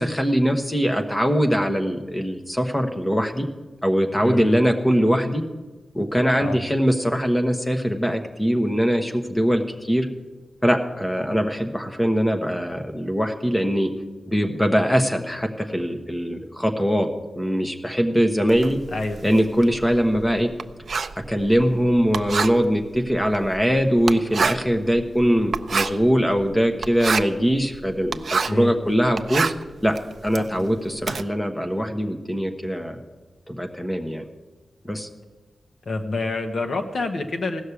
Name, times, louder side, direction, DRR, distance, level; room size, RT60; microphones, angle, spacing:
voice 1, 0.0-3.5 3.8-5.4 5.9-10.1 10.6-13.9 14.3-18.8 19.2-20.5 21.2-29.5 29.8-30.0 30.2-33.0 33.5-34.2 34.8-35.1, equal, 10° left, 5 dB, 1.1 m, -22 dB
voice 2, 4.2-4.6 6.4-6.6 18.9-19.2 28.5-28.7 30.3-30.5 35.8-37.6, left 2 dB, 55° left, 6 dB, 1.2 m, -27 dB
Writing, 18.5-28.7 29.0-31.2, right 5 dB, 55° right, 0.5 m, -28 dB
16.0 x 6.4 x 8.4 m, 1.2 s
wide cardioid pair, 155°, 0 cm